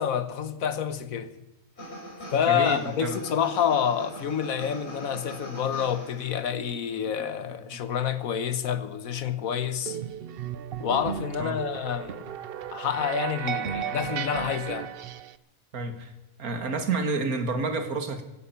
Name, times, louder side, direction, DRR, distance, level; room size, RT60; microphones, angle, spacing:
voice 1, 0.0-1.4 2.3-10.0 10.8-12.3 12.7-14.9, left 8 dB, 70° left, 1.4 m, -28 dB
sound 1, 1.8-6.5, equal, 45° left, 6.2 m, -42 dB
voice 2, 2.5-3.2 7.2-7.3 7.7-7.8 11.4-11.6 15.7-16.1 16.4-18.3, right 3 dB, 85° right, 2.1 m, -29 dB
sound 2, 9.9-15.4, right 9 dB, 55° right, 0.7 m, -34 dB
16.0 x 15.0 x 5.8 m
omnidirectional pair, 1.5 m